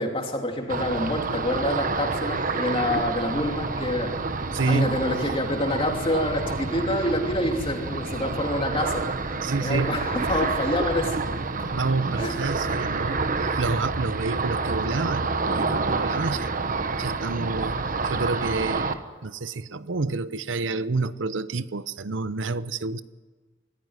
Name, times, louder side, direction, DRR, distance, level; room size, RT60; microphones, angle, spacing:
voice 1, 0.0-11.2 12.2-12.4 16.0-16.2, left 1 dB, 30° left, 2 dB, 2.8 m, -27 dB
Ocean, 0.7-18.9, right 3 dB, 45° right, 1.2 m, -28 dB
voice 2, 4.5-4.9 9.4-9.9 11.7-16.5 17.0-23.0, right 3 dB, 85° right, 15 dB, 0.8 m, -29 dB
24.5 x 14.5 x 9.8 m, 1.4 s
head